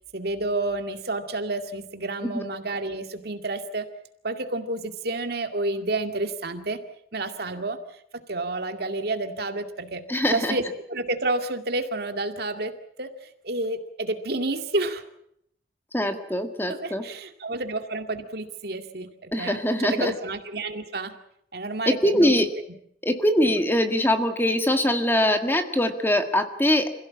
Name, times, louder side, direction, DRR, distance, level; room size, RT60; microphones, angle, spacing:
voice 1, 0.1-3.9 4.2-6.8 7.1-7.8 8.1-15.0 16.7-21.2 21.5-22.3 23.4-23.5, right 2 dB, 60° right, 7 dB, 2.2 m, -30 dB
voice 2, 10.1-10.6 15.9-17.0 19.3-20.1 21.9-22.5 23.0-26.9, left 1 dB, 10° left, 7 dB, 1.8 m, -22 dB
26.5 x 16.5 x 8.6 m, 0.74 s
head